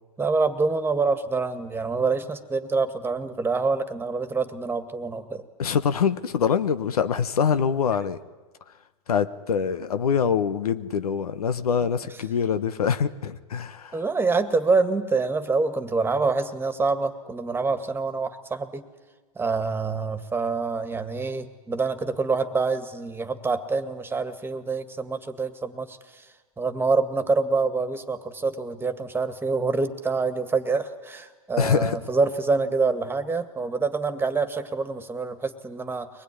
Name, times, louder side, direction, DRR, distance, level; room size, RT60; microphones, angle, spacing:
voice 1, 0.2-5.4 11.8-11.9 13.9-18.8 19.4-26.3 26.6-36.2, right 4 dB, 10° right, 9 dB, 2.0 m, -26 dB
voice 2, 5.6-8.2 9.1-14.0 31.6-32.0, left 7 dB, 85° left, 12 dB, 1.2 m, -24 dB
23.5 x 20.5 x 9.8 m, 1.3 s
hypercardioid pair, 105°, 19 cm